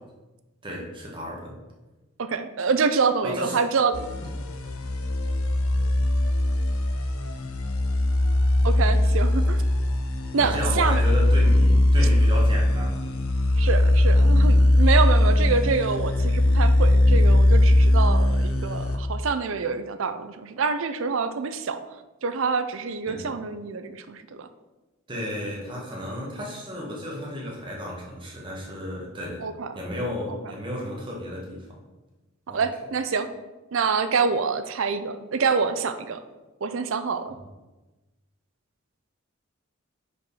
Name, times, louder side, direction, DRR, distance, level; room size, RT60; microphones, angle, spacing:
voice 1, 0.6-1.5 3.2-3.6 10.4-13.0 23.1-23.3 25.1-29.4 29.7-31.7 32.5-32.6, left 1 dB, 25° right, -3 dB, 1.5 m, -33 dB
voice 2, 2.2-4.1 8.6-9.6 10.3-11.1 13.6-21.8 22.2-24.5 29.4-29.8 30.3-30.4 32.5-33.3 33.7-36.2 36.6-37.4, right 5 dB, 65° right, 10 dB, 0.5 m, -26 dB
sound 1, 3.9-19.0, left 1 dB, 85° left, 0.7 m, -20 dB
5.1 x 4.5 x 5.5 m, 1.1 s
head